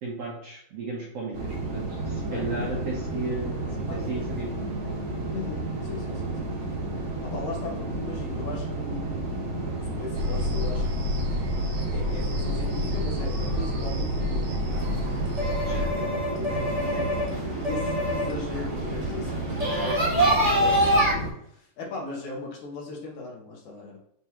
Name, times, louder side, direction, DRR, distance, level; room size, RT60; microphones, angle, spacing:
voice 1, 0.0-4.5 15.6-15.9, right 3 dB, 65° right, -4 dB, 1.7 m, -34 dB
sound 1, 1.3-21.3, right 2 dB, 35° right, 2.0 m, -32 dB
voice 2, 2.3-2.7 3.9-4.1 5.3-6.4 7.2-10.8 11.9-15.0 15.9-17.1 17.6-21.1 21.4-24.0, left 3 dB, 65° left, -2 dB, 2.8 m, -38 dB
sound 2, 10.1-15.9, left 1 dB, 80° right, 3.7 m, -29 dB
sound 3, 14.7-21.1, equal, 15° right, 1.8 m, -26 dB
7.9 x 4.4 x 3.1 m, 0.70 s
omnidirectional pair, 3.9 m